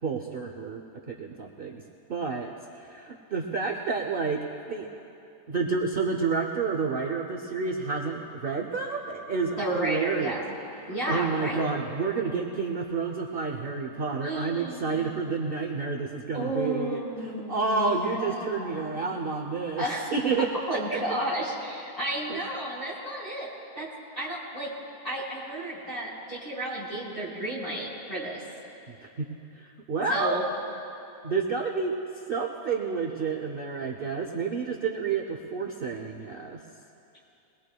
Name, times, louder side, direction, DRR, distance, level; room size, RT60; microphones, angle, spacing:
voice 1, 0.0-1.8 2.1-4.9 5.5-10.4 10.8-19.8 20.1-20.5 20.9-21.0 22.3-22.4 28.9-30.4 31.2-36.6, right 4 dB, 45° right, 2 dB, 0.8 m, -30 dB
voice 2, 9.6-10.6 10.9-11.7 14.2-15.1 16.3-19.0 19.8-20.1 20.7-23.5 23.7-23.9 24.2-24.7 25.0-28.4 30.1-30.4, right 1 dB, 25° left, -8 dB, 4.4 m, -32 dB
22.5 x 20.5 x 2.3 m, 2.8 s
omnidirectional pair, 1.5 m